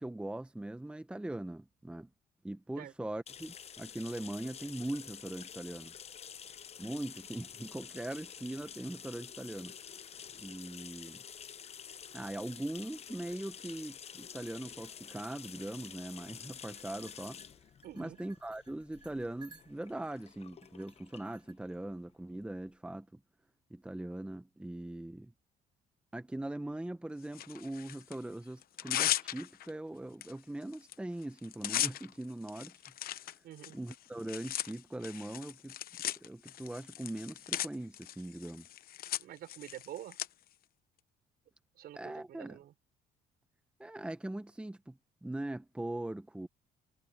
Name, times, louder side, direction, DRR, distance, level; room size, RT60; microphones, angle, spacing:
voice 1, 0.0-2.1 2.4-5.9 6.8-9.7 10.3-11.2 12.1-17.4 17.9-23.2 23.7-25.3 26.1-32.7 33.1-33.2 33.7-35.8 36.0-38.7 41.9-42.6 43.8-46.5, right 1 dB, 5° right, 1.2 m, -41 dB
sound 1, 3.3-22.7, left 8 dB, 40° left, 0.8 m, -49 dB
sound 2, 16.6-20.0 20.6-21.5, right 4 dB, 25° right, 4.4 m, -60 dB
voice 2, 17.8-18.2 33.4-33.8 39.2-40.2 41.8-42.7, right 12 dB, 65° right, 4.6 m, -47 dB
Tearing, 27.3-28.2 28.6-29.7 30.2-30.3 30.6-30.9 31.2-40.3, left 12 dB, 60° left, 1.0 m, -37 dB
cardioid pair, 110°, 17 cm